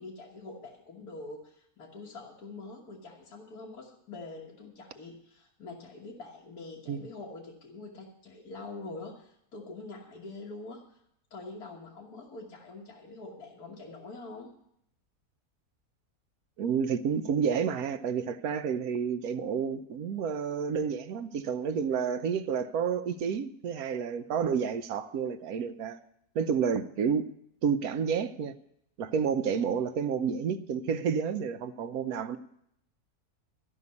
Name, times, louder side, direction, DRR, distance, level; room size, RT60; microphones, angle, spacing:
voice 1, 0.0-10.8 11.3-14.5, left 3 dB, 80° left, 1.9 m, -45 dB
voice 2, 16.6-26.0 26.3-27.2 27.6-28.5 29.0-32.4, right 6 dB, 75° right, 1.1 m, -30 dB
13.5 x 5.6 x 9.5 m
omnidirectional pair, 1.6 m